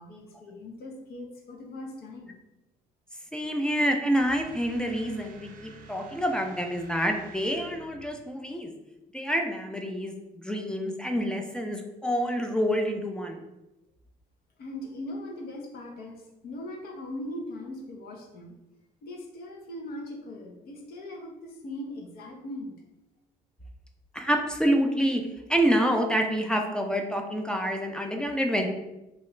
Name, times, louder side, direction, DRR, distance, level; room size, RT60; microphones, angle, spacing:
voice 1, 0.0-2.3 14.6-18.5 19.0-22.8, left 1 dB, 65° left, 1 dB, 0.7 m, -40 dB
voice 2, 3.3-8.7 9.1-13.4 24.1-28.7, equal, 5° left, 3 dB, 0.4 m, -27 dB
sound 1, 4.3-8.2, right 3 dB, 55° right, 0.5 m, -50 dB
3.0 x 2.4 x 3.0 m, 0.95 s
cardioid pair, 110°, 17 cm